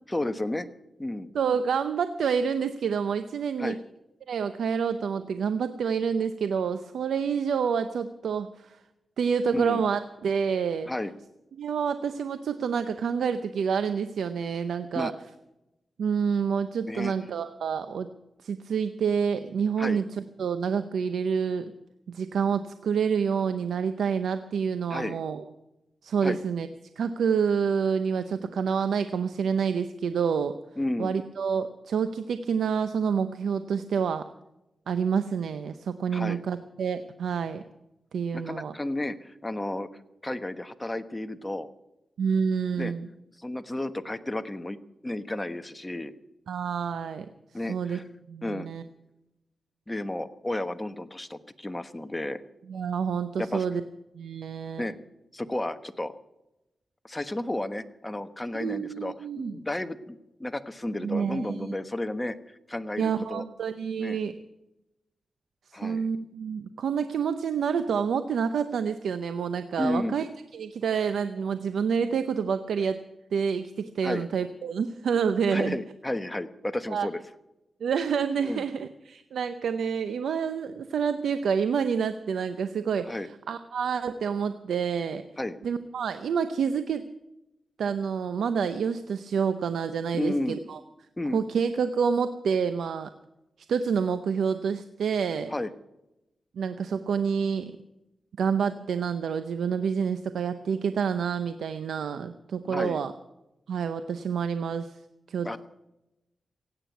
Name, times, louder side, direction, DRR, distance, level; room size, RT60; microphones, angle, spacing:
voice 1, 0.1-0.7 1.0-1.3 3.6-3.8 9.5-9.8 10.9-11.1 14.9-15.1 16.9-17.1 19.8-20.0 24.9-25.2 26.2-26.4 30.8-31.1 36.1-36.4 38.3-41.7 42.8-42.9 43.4-44.8 45.0-46.1 47.5-48.0 48.4-48.7 49.9-52.4 53.4-53.7 54.8-55.0 55.3-56.1 57.0-63.4 64.0-64.2 65.7-66.1 69.8-70.2 74.0-74.3 75.5-77.2 78.4-78.6 83.0-83.3 85.4-85.6 90.1-90.6 91.2-91.4 95.5-95.7 102.6-103.0 105.4-105.6, left 1 dB, 20° left, 10 dB, 1.2 m, -32 dB
voice 2, 1.3-3.8 4.3-8.8 9.2-10.9 11.6-15.1 16.0-18.1 18.4-21.7 22.1-25.4 26.0-26.7 27.0-30.5 31.0-34.2 34.9-37.6 38.1-38.7 42.2-43.1 46.5-47.3 47.7-48.0 48.3-48.8 52.7-53.8 54.2-54.9 58.5-59.6 61.0-61.8 63.0-64.3 65.7-70.3 70.5-73.0 73.3-75.8 76.9-77.1 77.8-85.2 85.6-87.0 87.8-90.8 91.3-93.1 93.7-95.5 96.6-97.7 98.4-103.1 103.7-104.9 105.3-105.6, right 6 dB, 90° right, 10 dB, 0.7 m, -28 dB
16.5 x 9.0 x 9.2 m, 0.93 s
cardioid pair, 60°, 0 cm